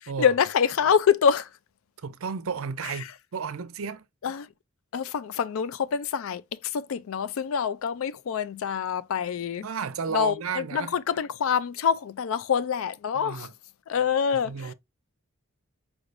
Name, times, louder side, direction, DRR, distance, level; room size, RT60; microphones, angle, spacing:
voice 1, 0.0-1.5 4.2-4.5 4.9-9.7 10.1-13.5 13.9-14.7, left 7 dB, 75° left, 0.4 m, -26 dB
voice 2, 2.0-4.0 9.6-10.9 13.2-13.5 14.4-14.7, right 5 dB, 80° right, 0.5 m, -32 dB
5.0 x 3.3 x 2.5 m
head